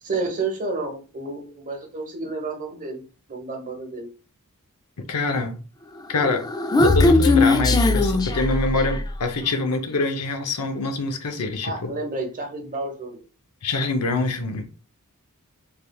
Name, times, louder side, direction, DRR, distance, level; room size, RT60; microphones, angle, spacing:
voice 1, 0.0-3.0 3.3-4.1 11.6-13.2, right 3 dB, 35° right, 1.0 m, -30 dB
voice 2, 5.0-5.6 6.1-6.4 6.8-11.9 13.6-14.8, left 3 dB, 90° left, 0.7 m, -25 dB
Human voice, 6.2-9.2, left 2 dB, 15° left, 0.3 m, -19 dB
3.6 x 3.2 x 2.3 m
head